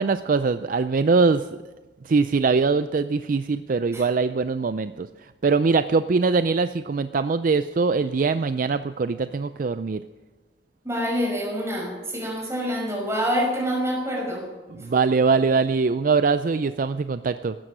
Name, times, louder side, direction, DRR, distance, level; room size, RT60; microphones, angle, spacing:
voice 1, 0.0-1.5 2.1-5.1 5.4-10.0 14.8-17.5, right 4 dB, 45° right, 12 dB, 0.4 m, -22 dB
voice 2, 10.8-14.4 14.8-14.9, equal, 15° right, -1 dB, 5.5 m, -26 dB
16.0 x 12.5 x 6.1 m, 1.2 s
head